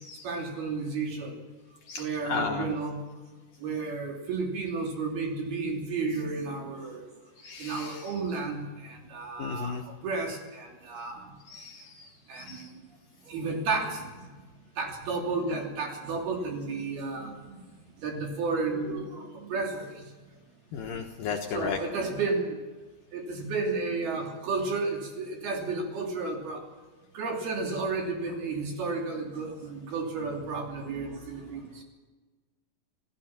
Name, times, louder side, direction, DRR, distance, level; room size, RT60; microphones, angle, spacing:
voice 1, 0.2-1.4 2.0-3.0 3.6-7.0 7.6-11.3 12.3-12.8 13.3-14.3 14.8-17.6 18.0-20.1 21.5-22.6 23.1-26.6 27.1-31.8, right 4 dB, 60° right, 1 dB, 4.8 m, -32 dB
voice 2, 2.3-2.7 7.4-8.1 9.4-9.8 11.5-12.7 20.7-21.8, left 6 dB, 65° left, 2 dB, 2.4 m, -34 dB
27.5 x 16.0 x 6.0 m, 1.3 s
omnidirectional pair, 5.3 m